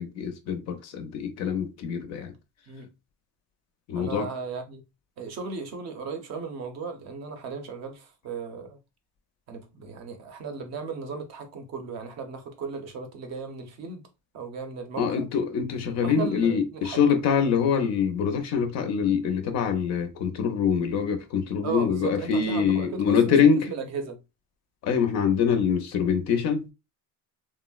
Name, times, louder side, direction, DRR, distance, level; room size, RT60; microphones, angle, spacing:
voice 1, 0.0-2.3 3.9-4.3 15.0-23.7 24.8-26.7, left 6 dB, 45° left, 0.4 m, -24 dB
voice 2, 3.9-4.8 5.2-8.8 9.5-14.1 14.3-15.3 16.0-17.2 21.6-23.4 23.7-24.2, right 5 dB, 40° right, 0.6 m, -36 dB
3.5 x 2.0 x 2.2 m
cardioid pair, 175°, 40 cm